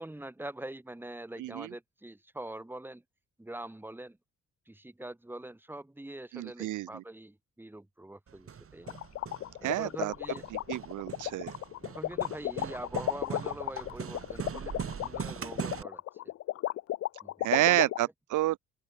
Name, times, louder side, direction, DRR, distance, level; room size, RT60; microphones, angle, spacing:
voice 1, 0.0-3.0 3.4-4.2 4.7-9.0 9.6-10.5 11.2-11.3 11.8-16.3 17.2-17.9, right 1 dB, 5° right, 2.0 m, -44 dB
voice 2, 6.3-6.9 9.6-10.1 10.7-11.5 17.4-18.6, right 15 dB, 80° right, 1.1 m, -29 dB
Hammer, 8.3-15.8, right 7 dB, 45° right, 3.6 m, -41 dB
sound 1, 8.9-18.0, left 14 dB, 55° left, 0.4 m, -33 dB
cardioid pair, 90°, 30 cm